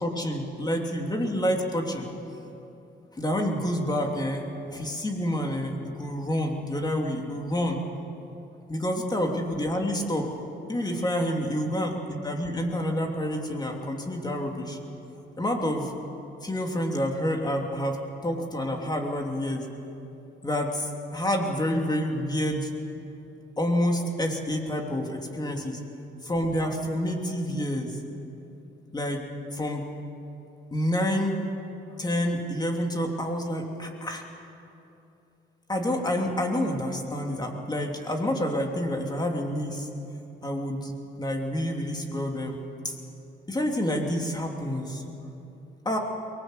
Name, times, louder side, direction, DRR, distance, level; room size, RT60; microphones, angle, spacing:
voice 1, 0.0-2.1 3.1-7.8 8.7-10.3 10.7-14.8 15.4-15.9 16.4-19.7 20.4-22.7 23.6-25.8 26.2-28.0 28.9-29.2 29.5-29.9 30.7-31.4 32.0-34.2 35.7-39.9 40.4-40.9 41.2-43.0 43.5-45.1 45.8-46.0, equal, 20° left, 2 dB, 3.0 m, -28 dB
22.5 x 19.5 x 8.2 m, 2.8 s
cardioid pair, 90°, 20 cm